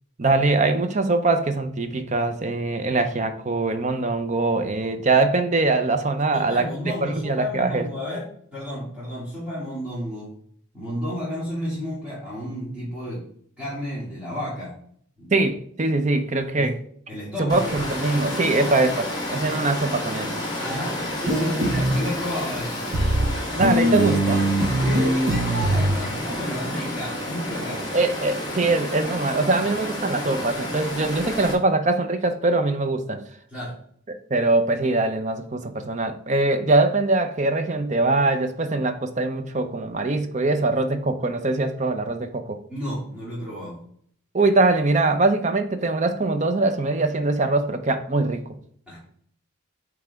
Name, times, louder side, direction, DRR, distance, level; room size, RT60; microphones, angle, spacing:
voice 1, 0.2-6.7 7.0-7.9 15.3-16.7 17.4-20.4 23.5-24.5 27.5-33.2 34.1-42.6 44.3-48.4, right 2 dB, 35° right, 8 dB, 0.6 m, -22 dB
voice 2, 6.3-8.3 8.5-10.3 10.7-13.3 13.6-14.8 15.2-15.3 16.6-16.8 17.1-17.9 20.6-22.8 24.8-27.8 33.5-33.8 42.7-43.8 48.9-49.0, equal, 5° right, -11 dB, 2.3 m, -31 dB
Water, 17.5-31.5, left 1 dB, 20° left, 1.3 m, -30 dB
sound 1, 21.3-21.9 22.9-23.3 23.6-25.9, right 1 dB, 60° right, 1.0 m, -21 dB
8.7 x 3.4 x 3.5 m, 0.62 s
head